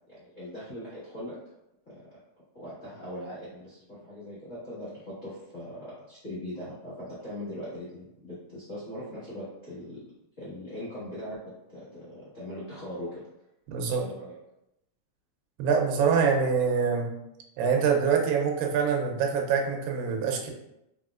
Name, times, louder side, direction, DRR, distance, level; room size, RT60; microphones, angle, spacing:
voice 1, 0.1-1.3 1.9-2.0 2.5-10.0 10.4-13.2 13.9-14.3, left 1 dB, 75° left, -10 dB, 0.7 m, -40 dB
voice 2, 13.7-14.0 15.6-17.1 17.6-20.5, right 6 dB, 90° right, 2 dB, 2.5 m, -25 dB
5.1 x 4.3 x 2.4 m, 0.86 s
omnidirectional pair, 3.9 m